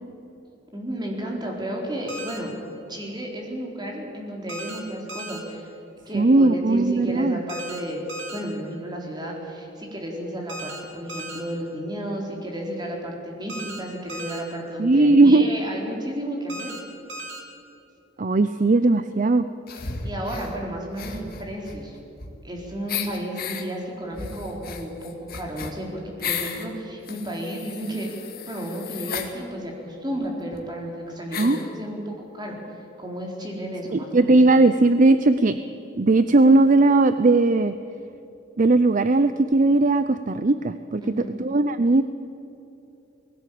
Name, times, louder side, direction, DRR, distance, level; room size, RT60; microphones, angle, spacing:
voice 1, 0.7-2.5 2.9-5.7 6.1-8.0 8.3-16.7 20.0-22.0 22.4-28.1 28.4-32.0 32.3-34.3 41.0-41.4, equal, 25° right, 0 dB, 4.1 m, -32 dB
sound 1, 2.1-2.4 4.5-4.8 5.1-5.4 7.5-7.8 8.1-8.4 10.5-10.8 11.1-11.4 13.5-13.8 14.1-14.4 16.5-16.8 17.1-17.4, right 1 dB, 70° right, 3.7 m, -36 dB
voice 2, 6.1-7.4 14.8-15.5 18.2-19.5 31.4-31.6 33.9-35.6 35.9-37.7 38.6-41.0 41.4-42.0, right 2 dB, 45° right, 11 dB, 0.6 m, -18 dB
sound 2, 19.7-20.5 20.9-22.5 22.9-23.6 24.1-26.7 27.0-29.3 30.2-30.3 30.5-30.6 31.3-31.7, left 6 dB, 50° left, 2.2 m, -34 dB
19.5 x 17.0 x 8.7 m, 3.0 s
head